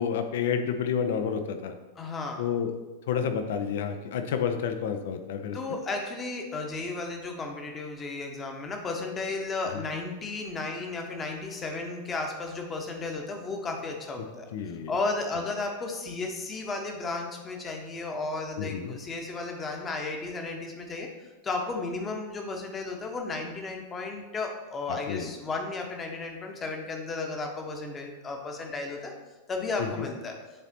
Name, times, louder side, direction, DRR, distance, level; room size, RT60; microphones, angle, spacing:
voice 1, 0.0-1.7 2.4-2.7 3.1-5.6 14.2-14.3 14.5-14.9 18.6-19.0 24.9-25.3 29.8-30.1, left 7 dB, 55° left, 7 dB, 0.6 m, -30 dB
voice 2, 2.0-2.5 5.5-14.5 14.9-29.1 29.5-30.4, left 3 dB, 20° left, 2 dB, 1.0 m, -34 dB
10.0 x 4.1 x 2.8 m, 1.2 s
figure-of-eight pair, 90°, 0 cm